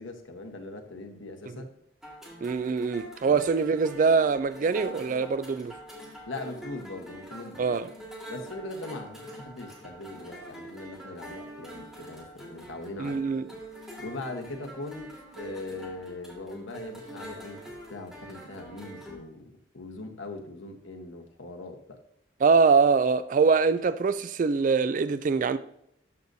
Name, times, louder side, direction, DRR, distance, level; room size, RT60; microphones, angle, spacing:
voice 1, 0.0-1.7 3.3-3.4 6.3-7.6 8.3-13.2 14.0-22.0, left 2 dB, 90° left, 1.2 m, -40 dB
sound 1, 2.0-19.2, right 1 dB, ahead, 1.8 m, -45 dB
voice 2, 2.4-5.7 7.6-7.9 13.0-13.4 22.4-25.6, right 5 dB, 40° right, 0.3 m, -23 dB
12.5 x 6.6 x 2.7 m
head